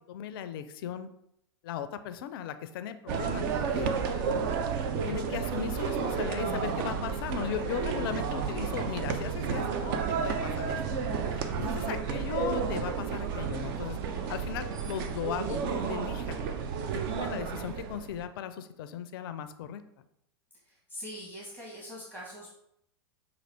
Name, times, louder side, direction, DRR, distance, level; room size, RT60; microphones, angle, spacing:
voice 1, 0.1-1.1 1.6-4.3 5.0-16.4 17.1-19.8, left 9 dB, 55° left, 10 dB, 0.4 m, -38 dB
sound 1, 3.1-18.2, right 6 dB, 50° right, 0.5 m, -32 dB
voice 2, 20.6-22.5, equal, 15° right, -5 dB, 1.2 m, -43 dB
6.0 x 2.4 x 3.3 m, 0.77 s
hypercardioid pair, 100°, 14 cm